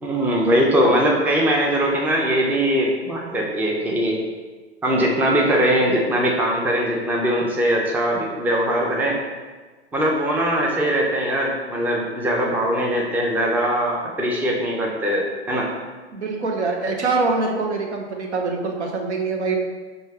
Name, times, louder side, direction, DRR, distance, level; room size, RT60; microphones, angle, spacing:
voice 1, 0.0-4.2 4.8-9.2 9.9-15.7, equal, 5° right, -1 dB, 0.4 m, -21 dB
voice 2, 16.1-19.6, right 3 dB, 80° right, 1 dB, 0.8 m, -24 dB
5.2 x 2.5 x 3.3 m, 1.3 s
figure-of-eight pair, 95°, 34 cm